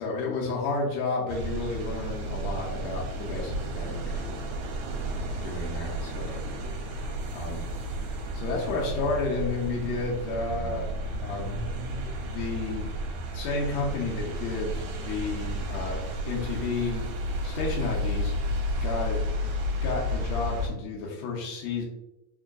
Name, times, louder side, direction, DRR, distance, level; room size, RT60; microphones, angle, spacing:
voice 1, 0.0-4.4 5.1-6.5 6.8-7.1 7.3-7.7 8.3-10.9 11.2-11.6 12.2-12.9 13.3-17.1 17.4-18.3 18.8-19.2 19.8-21.8, left 3 dB, 75° left, -2 dB, 1.9 m, -32 dB
sound 1, 1.3-20.7, equal, 75° right, 1.9 m, -32 dB
4.6 x 2.7 x 2.4 m, 0.90 s
omnidirectional pair, 3.4 m